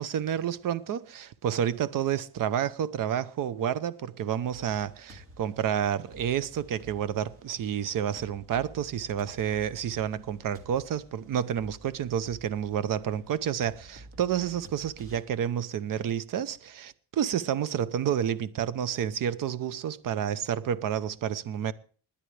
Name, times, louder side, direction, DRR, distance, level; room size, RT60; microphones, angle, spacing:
voice 1, 0.0-21.7, right 9 dB, 55° right, 0.8 m, -30 dB
sound 1, 4.5-15.2, right 1 dB, 35° right, 2.4 m, -52 dB
20.5 x 10.0 x 3.4 m
cardioid pair, 125°, 39 cm